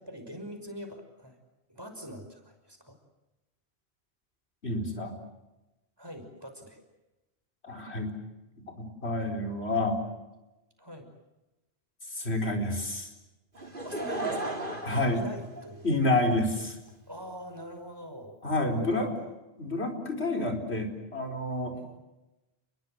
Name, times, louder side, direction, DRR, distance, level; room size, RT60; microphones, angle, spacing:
voice 1, 0.0-1.4 1.7-3.0 6.0-6.8 9.2-9.3 10.8-11.1 13.8-14.7 15.1-16.0 17.1-19.3 20.3-20.6 21.7-22.0, equal, 20° right, 5 dB, 5.9 m, -44 dB
voice 2, 4.6-5.1 7.6-8.1 8.6-10.0 12.1-13.1 14.8-15.2 15.8-16.8 18.4-19.1 19.6-22.0, left 2 dB, 80° left, 3 dB, 4.9 m, -29 dB
Laughter / Crowd, 13.6-16.2 16.9-17.0, right 2 dB, 50° right, 3.7 m, -35 dB
30.0 x 22.0 x 7.9 m, 1.0 s
omnidirectional pair, 1.1 m